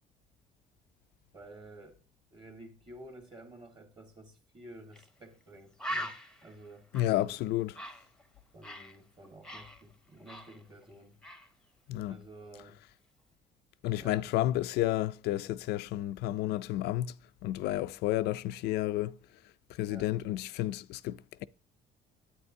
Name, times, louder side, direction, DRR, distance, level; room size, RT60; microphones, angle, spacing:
voice 1, 1.3-2.0 2.3-6.2 6.4-7.4 8.5-11.2 12.1-12.8 14.0-14.3 19.9-20.1, right 1 dB, 30° right, 1.7 m, -51 dB
Bird, 4.9-5.1 5.4-5.5 5.8-9.0 9.2-10.9 11.2-11.5, equal, 5° left, 0.7 m, -42 dB
voice 2, 6.9-7.8 11.9-12.2 13.8-17.1 17.4-19.2 19.7-21.5, left 15 dB, 80° left, 0.4 m, -31 dB
9.7 x 8.8 x 2.7 m
cardioid pair, 110°, 17 cm